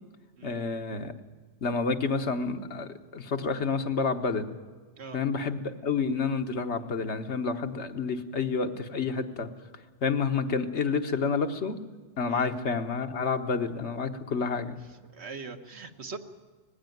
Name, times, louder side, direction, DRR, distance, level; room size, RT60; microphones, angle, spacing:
voice 1, 0.4-1.1 1.6-4.5 5.1-9.5 10.0-11.8 12.2-14.7, left 5 dB, 80° left, 7 dB, 1.5 m, -29 dB
voice 2, 14.9-16.2, right 4 dB, 70° right, 6 dB, 1.6 m, -42 dB
19.5 x 15.5 x 9.2 m, 1.4 s
omnidirectional pair, 1.2 m